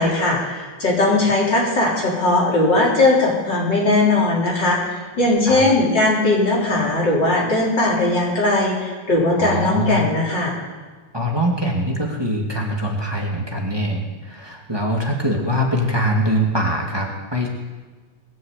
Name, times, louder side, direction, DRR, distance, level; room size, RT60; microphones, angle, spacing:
voice 1, 0.0-10.5, left 2 dB, 65° left, -4 dB, 4.8 m, -19 dB
voice 2, 9.4-10.1 11.1-17.5, equal, 15° right, -1 dB, 2.1 m, -23 dB
20.5 x 7.4 x 8.2 m, 1.4 s
omnidirectional pair, 2.1 m